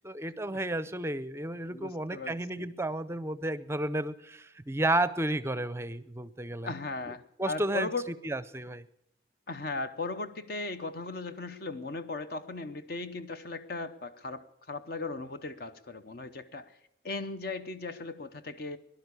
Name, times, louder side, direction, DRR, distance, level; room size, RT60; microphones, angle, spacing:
voice 1, 0.0-6.7 7.4-7.9 8.2-8.8, right 1 dB, 15° right, 15 dB, 0.5 m, -32 dB
voice 2, 1.7-2.7 6.6-8.1 9.5-16.8 17.0-18.8, left 3 dB, 50° left, 11 dB, 0.8 m, -37 dB
18.0 x 11.5 x 6.8 m, 0.80 s
head